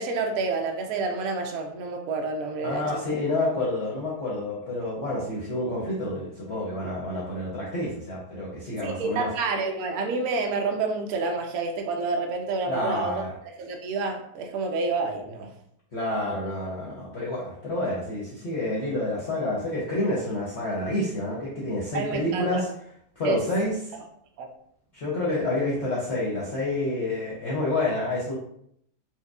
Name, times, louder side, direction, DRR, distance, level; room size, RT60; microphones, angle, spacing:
voice 1, 0.0-3.0 8.8-13.1 13.6-15.5 21.9-22.6 23.2-23.4 23.7-23.8 24.4-24.5, right 3 dB, 70° right, 3 dB, 1.0 m, -28 dB
voice 2, 2.6-9.3 12.7-13.3 15.9-22.7 23.2-23.8 24.9-28.3, left 2 dB, 55° left, -5 dB, 0.8 m, -28 dB
4.3 x 2.4 x 2.3 m, 0.71 s
omnidirectional pair, 1.8 m